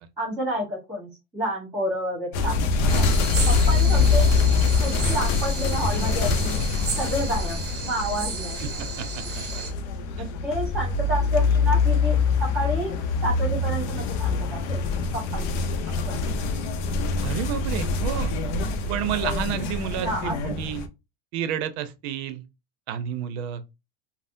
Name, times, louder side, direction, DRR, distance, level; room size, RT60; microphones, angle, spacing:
voice 1, 0.2-3.1 3.5-4.3 4.8-6.6 7.0-7.6 7.8-8.6 10.1-14.8 15.1-16.2 20.0-20.4, equal, 10° right, 1.1 m, -30 dB
sound 1, 2.3-20.9, left 4 dB, 60° left, 0.6 m, -24 dB
sound 2, 2.9-9.7, right 4 dB, 30° right, 0.7 m, -34 dB
voice 2, 8.6-9.4 10.2-10.3 17.2-18.3 18.9-20.9 21.3-22.4 22.9-23.8, right 9 dB, 60° right, 0.6 m, -31 dB
3.5 x 2.0 x 2.6 m
supercardioid pair, 145°, 37 cm